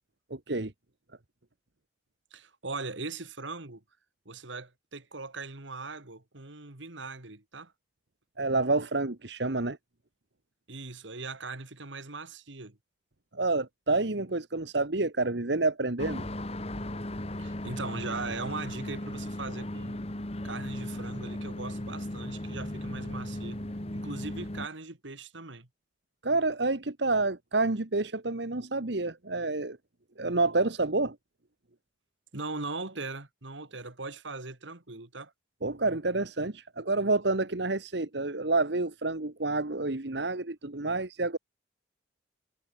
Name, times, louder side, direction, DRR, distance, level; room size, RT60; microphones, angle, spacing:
voice 1, 0.3-0.7 8.4-9.8 13.3-16.3 26.2-29.8 30.2-31.2 35.6-41.4, right 3 dB, 60° right, 1.5 m, -28 dB
voice 2, 2.3-3.8 4.3-7.7 10.7-12.8 17.4-20.0 20.4-23.6 23.9-25.7 32.3-35.3, right 3 dB, 80° right, 2.3 m, -39 dB
sound 1, 16.0-24.7, left 1 dB, 30° left, 1.7 m, -36 dB
head